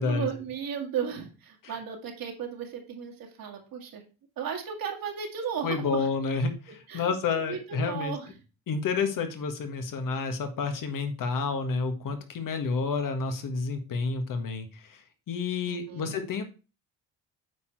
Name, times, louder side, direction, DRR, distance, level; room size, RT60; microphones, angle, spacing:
voice 1, 0.0-4.0 4.4-6.1 6.7-7.1 7.5-8.3 15.7-16.1, right 7 dB, 70° right, 1 dB, 2.3 m, -35 dB
voice 2, 5.6-8.2 8.7-16.4, left 4 dB, 65° left, 7 dB, 1.7 m, -30 dB
8.2 x 4.7 x 4.6 m, 0.33 s
supercardioid pair, 70°, 35 cm